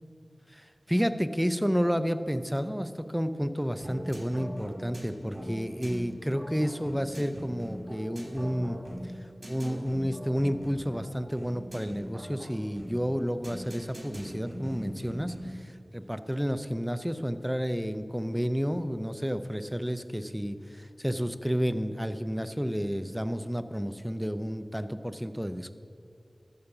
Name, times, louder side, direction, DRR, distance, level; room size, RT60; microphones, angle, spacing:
voice 1, 0.5-8.8 9.5-25.7, equal, ahead, 11 dB, 0.5 m, -31 dB
sound 1, 3.8-15.6, equal, 30° right, 3.1 m, -41 dB
13.5 x 5.5 x 5.9 m, 2.3 s
wide cardioid pair, 55°, 0 cm